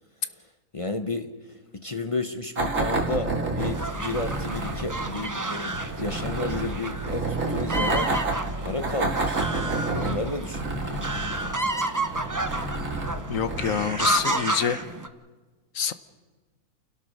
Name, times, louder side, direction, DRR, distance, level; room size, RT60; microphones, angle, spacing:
voice 1, 0.3-8.1 8.6-11.5, left 2 dB, 25° left, 8 dB, 0.8 m, -32 dB
sound 1, 2.6-14.7, right 2 dB, 55° right, 2.5 m, -30 dB
sound 2, 3.6-15.1, right 2 dB, 15° right, 0.7 m, -31 dB
voice 2, 13.3-14.8 15.7-15.9, left 8 dB, 60° left, 12 dB, 1.2 m, -26 dB
28.5 x 17.0 x 6.3 m, 1.3 s
omnidirectional pair, 1.6 m